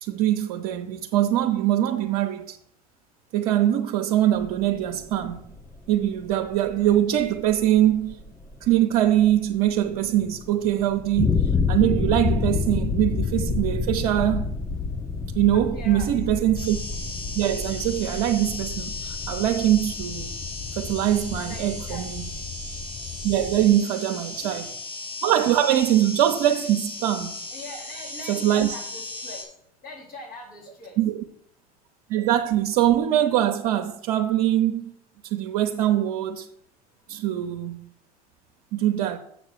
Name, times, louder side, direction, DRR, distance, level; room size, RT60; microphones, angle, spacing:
voice 1, 0.0-2.6 3.3-5.4 5.9-8.2 8.6-14.5 15.3-16.8 17.3-20.3 20.7-22.2 23.2-24.7 25.2-27.3 28.3-28.7 31.0-31.2 32.1-34.9 35.2-36.5 37.1-37.9 38.7-39.2, right 12 dB, 70° right, 0.8 m, -23 dB
sound 1, 4.4-23.7, left 4 dB, 15° left, 0.7 m, -29 dB
voice 2, 15.5-16.1 21.3-22.1 24.4-24.5 27.5-29.4 29.8-31.0, left 2 dB, 50° left, 4.2 m, -41 dB
sound 2, 16.6-29.4, left 3 dB, 80° left, 4.1 m, -36 dB
7.5 x 6.0 x 6.8 m
hypercardioid pair, 90°, 20 cm